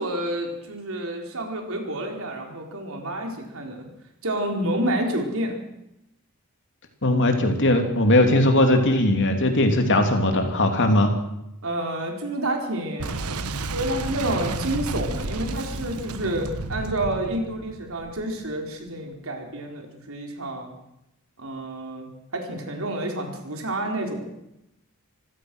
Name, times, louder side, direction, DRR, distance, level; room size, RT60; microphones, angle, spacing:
voice 1, 0.0-3.9 4.2-5.6 11.6-13.1 13.7-20.7 21.4-24.3, right 1 dB, 65° right, 2 dB, 4.7 m, -29 dB
voice 2, 7.0-11.1, left 1 dB, 55° left, 5 dB, 3.2 m, -19 dB
Boom, 13.0-18.6, right 3 dB, 85° right, 1.3 m, -32 dB
26.0 x 16.5 x 6.4 m, 0.86 s
head